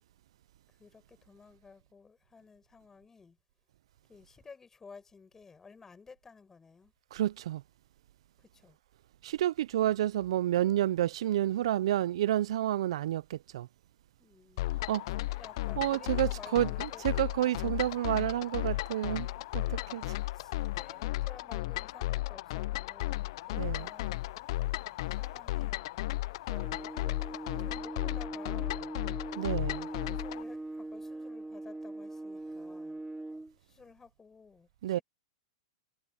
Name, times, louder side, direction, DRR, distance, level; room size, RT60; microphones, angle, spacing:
voice 1, 0.7-3.4 4.1-6.9 8.4-8.8 14.2-15.0 15.3-17.1 20.3-24.3 25.0-25.9 27.6-29.0 30.1-33.0 33.6-35.0, left 5 dB, 15° left, 5.9 m, -54 dB
voice 2, 7.1-7.6 9.2-13.7 14.9-15.0 15.8-19.3 19.5-20.2 23.6-23.9 29.3-29.9 34.8-35.0, right 13 dB, 70° right, 0.4 m, -30 dB
sound 1, 14.6-30.4, left 17 dB, 60° left, 0.4 m, -35 dB
sound 2, 26.5-33.5, right 2 dB, 5° right, 3.0 m, -41 dB
hypercardioid pair, 130°, 3 cm